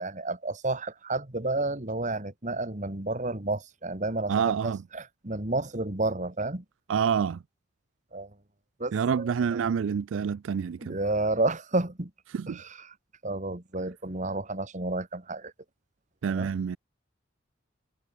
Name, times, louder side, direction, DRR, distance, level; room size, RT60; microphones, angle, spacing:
voice 1, 0.0-6.6 8.1-8.3 8.8-8.9 9.2-9.7 10.8-12.1 12.5-12.9 13.2-15.5 16.3-16.5, right 2 dB, 40° right, 2.0 m, -31 dB
voice 2, 4.3-4.8 6.9-7.4 8.9-11.0 12.3-12.6 16.2-16.8, right 7 dB, 85° right, 0.4 m, -27 dB
head